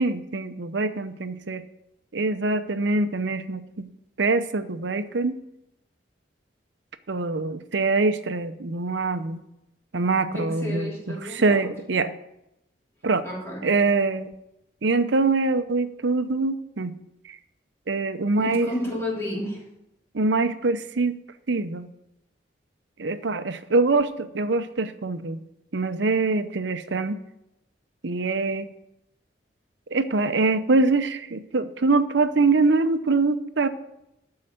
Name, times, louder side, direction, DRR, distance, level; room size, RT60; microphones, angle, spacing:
voice 1, 0.0-1.6 2.1-3.9 4.2-5.3 7.1-9.4 9.9-12.1 13.0-13.2 13.6-14.3 14.8-16.9 17.3-17.4 17.9-18.7 20.1-21.2 21.5-21.9 23.0-25.4 25.7-27.2 28.0-28.7 29.9-33.7, right 3 dB, 65° right, 11 dB, 0.7 m, -24 dB
voice 2, 10.3-11.7 13.2-13.6 18.4-19.6, equal, 15° left, -5 dB, 3.2 m, -31 dB
12.0 x 4.8 x 7.6 m, 0.85 s
head